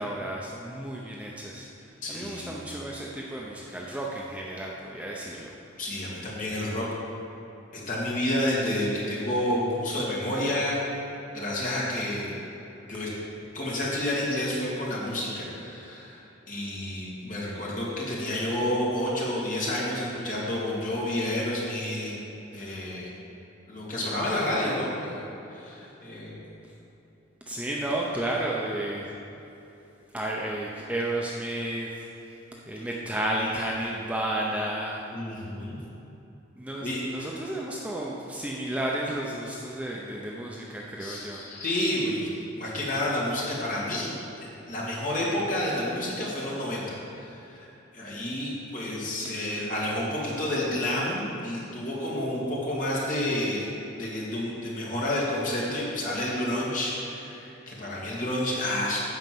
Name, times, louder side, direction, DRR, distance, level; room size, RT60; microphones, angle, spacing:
voice 1, 0.0-5.6 26.6-26.7 27.5-29.1 30.1-32.4 32.6-35.1 36.6-41.4, right 1 dB, 5° right, -3 dB, 0.6 m, -32 dB
voice 2, 2.0-2.5 5.8-6.9 7.7-10.8 11.3-12.3 12.8-13.1 13.5-22.1 22.5-23.1 23.7-25.2 25.5-26.4 35.1-35.8 36.8-37.3 41.0-44.1 44.4-53.7 54.0-59.0, left 1 dB, 40° left, -5 dB, 2.2 m, -30 dB
10.5 x 4.3 x 7.7 m, 3.0 s
head